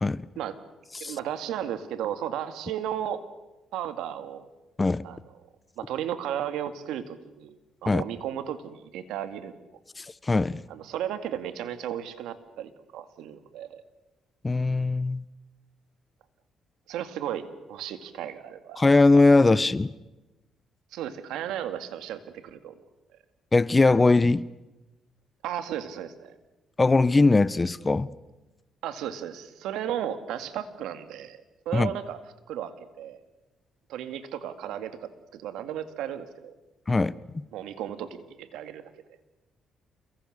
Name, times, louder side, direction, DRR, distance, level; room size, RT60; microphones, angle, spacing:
voice 1, 1.0-3.2 3.7-4.5 5.0-5.2 5.8-9.5 10.7-13.8 16.9-18.8 20.9-22.7 25.4-26.3 28.8-31.4 31.7-32.2 32.5-33.2 33.9-36.5 37.5-38.8, right 10 dB, 90° right, 2.1 m, -34 dB
voice 2, 10.0-10.6 14.4-15.2 18.8-19.9 23.5-24.5 26.8-28.1 31.7-31.9 36.9-37.1, left 3 dB, 25° left, 0.9 m, -20 dB
29.5 x 22.5 x 6.7 m
cardioid pair, 90°, 0 cm